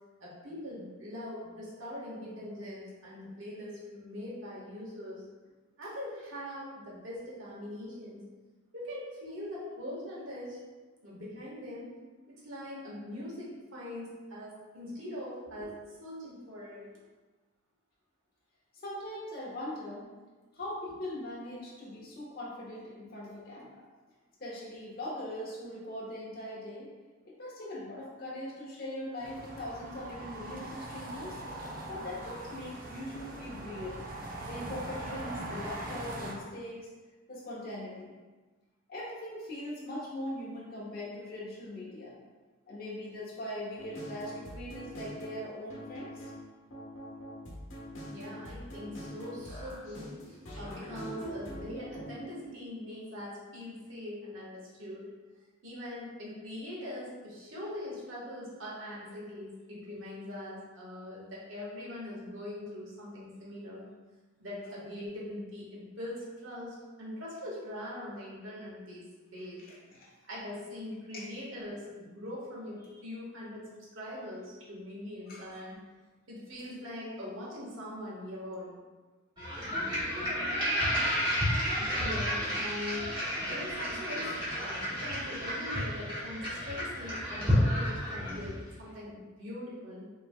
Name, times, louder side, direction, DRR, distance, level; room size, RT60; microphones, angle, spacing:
voice 1, 0.2-5.2 5.8-8.3 8.7-10.6 11.0-11.9 12.3-16.9 48.1-55.1 55.6-63.9 64.4-69.6 70.3-75.8 76.3-78.8 79.6-80.0 82.0-90.1, left 1 dB, 75° right, -6 dB, 1.4 m, -42 dB
voice 2, 18.8-20.1 20.5-23.8 24.4-26.9 27.4-31.4 31.9-34.0 34.5-36.9 37.3-38.1 38.9-42.2 42.7-46.3 69.9-70.1 71.1-71.3 72.8-73.0 75.3-75.6, left 1 dB, 50° left, -6 dB, 1.1 m, -41 dB
sound 1, 29.2-36.3, right 1 dB, 45° right, 0.6 m, -41 dB
sound 2, 43.8-52.3, equal, 80° left, 1.2 m, -44 dB
sound 3, 79.4-88.7, equal, 20° right, 1.5 m, -31 dB
5.7 x 3.1 x 2.2 m, 1.3 s
head